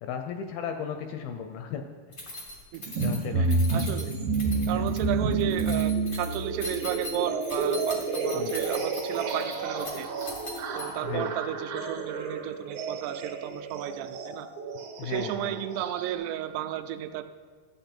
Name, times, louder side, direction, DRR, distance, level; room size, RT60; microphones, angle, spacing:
voice 1, 0.0-1.8 2.2-2.3 3.0-3.6 4.5-4.9 8.3-8.6 11.0-11.3 15.0-15.6, left 7 dB, 80° left, 5 dB, 2.2 m, -36 dB
Keys jangling, 2.1-11.1, left 1 dB, 60° left, 0.5 m, -40 dB
sound 1, 2.8-16.1, right 3 dB, 65° right, 2.7 m, -30 dB
voice 2, 3.7-4.2 4.7-10.1 10.7-14.5 15.0-17.2, right 12 dB, 90° right, 10 dB, 2.7 m, -33 dB
13.5 x 8.5 x 4.4 m, 1.5 s
omnidirectional pair, 4.7 m